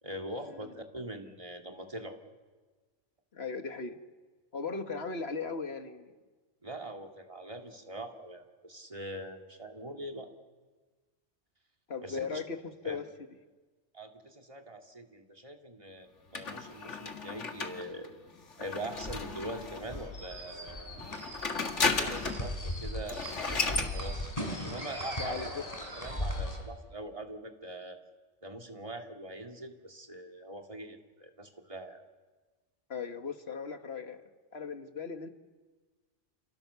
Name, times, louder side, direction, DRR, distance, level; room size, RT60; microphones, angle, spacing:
voice 1, 0.0-2.2 6.6-10.3 12.0-12.4 12.8-13.0 13.9-18.1 18.6-21.0 21.8-25.5 26.0-28.0 28.4-32.0, right 1 dB, 25° right, 3 dB, 2.5 m, -43 dB
voice 2, 3.3-4.0 4.5-6.2 11.9-13.0 25.2-25.6 32.9-35.3, left 5 dB, 55° left, 6 dB, 2.0 m, -38 dB
sound 1, 16.3-20.0 21.0-22.5 22.8-22.9 23.1-23.9, left 4 dB, 70° left, 2.2 m, -34 dB
sound 2, 18.9-26.6, left 1 dB, 30° left, 5.6 m, -38 dB
29.0 x 28.0 x 7.0 m, 1.3 s
omnidirectional pair, 1.3 m